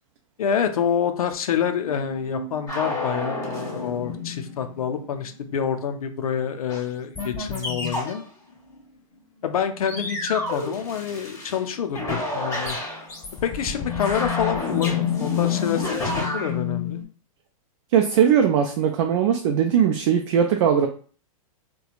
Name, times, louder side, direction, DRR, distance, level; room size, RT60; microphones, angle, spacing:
voice 1, 0.4-8.2 9.4-12.8 13.4-17.0, left 8 dB, 90° left, 7 dB, 0.5 m, -27 dB
sound 1, 1.8-5.6 7.9-8.0 8.8-8.9 9.6-10.7 11.6-12.0 12.7-17.0, left 10 dB, 40° left, 0.6 m, -32 dB
sound 2, 2.7-4.5 6.7-6.8 7.1-8.3 9.9-11.6 11.9-16.5, left 2 dB, 20° left, 1.4 m, -30 dB
voice 2, 17.9-20.9, right 8 dB, 55° right, 3 dB, 0.4 m, -19 dB
2.8 x 2.2 x 2.4 m, 0.41 s
hypercardioid pair, 135°, 18 cm